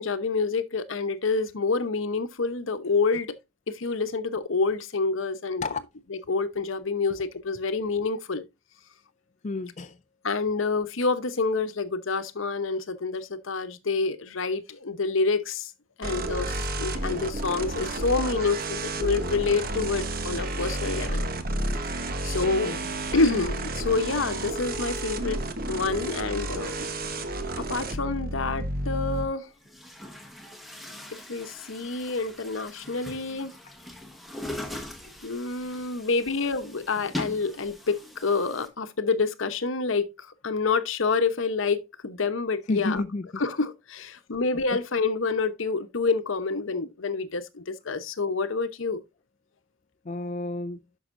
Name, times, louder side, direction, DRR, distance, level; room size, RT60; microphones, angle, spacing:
voice 1, 0.0-3.3 3.7-5.6 6.3-8.4 10.2-15.7 16.0-21.3 22.2-22.7 23.1-25.4 25.7-26.9 27.6-29.5 31.3-33.5 35.2-43.0 43.4-49.0, left 4 dB, 70° left, 0.9 m, -27 dB
voice 2, 9.4-10.0 22.4-22.9 27.4-27.5 33.6-33.7 42.7-43.4 50.0-50.8, left 2 dB, 35° left, 0.4 m, -31 dB
sound 1, 16.0-29.3, right 1 dB, 45° right, 1.1 m, -31 dB
Chatter / Gurgling / Tap, 28.8-28.9 29.6-38.7, left 1 dB, ahead, 1.4 m, -41 dB
10.5 x 6.3 x 2.5 m
head